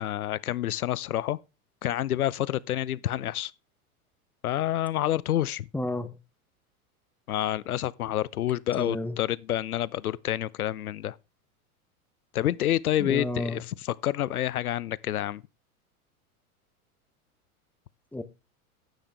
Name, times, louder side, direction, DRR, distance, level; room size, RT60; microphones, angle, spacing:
voice 1, 0.0-1.4 1.8-3.5 4.4-5.7 7.3-11.2 12.3-15.4, left 12 dB, 80° left, 0.6 m, -28 dB
voice 2, 5.7-6.2 8.8-9.2 13.0-13.6 18.1-18.2, left 1 dB, 5° left, 0.8 m, -31 dB
9.9 x 8.2 x 3.3 m
figure-of-eight pair, 90°, 44 cm